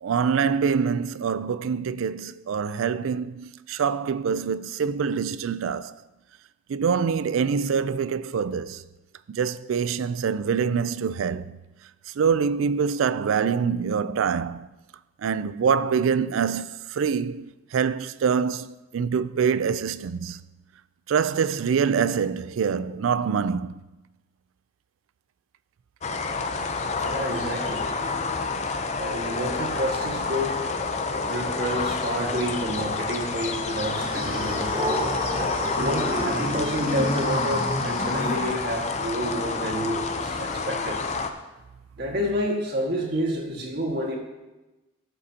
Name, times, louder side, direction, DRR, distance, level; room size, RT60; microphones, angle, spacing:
voice 1, 0.0-6.0 6.7-8.8 9.3-11.6 12.2-14.7 15.2-20.4 21.1-23.7, right 6 dB, 80° right, 0.4 m, -25 dB
sound 1, 26.0-41.3, left 4 dB, 35° left, 0.5 m, -28 dB
voice 2, 27.0-27.9 29.0-30.6 31.3-34.9 35.7-41.0 42.0-44.2, equal, 50° right, 1.7 m, -29 dB
sound 2, 34.0-38.8, equal, 20° right, 1.7 m, -30 dB
14.0 x 7.6 x 2.8 m
head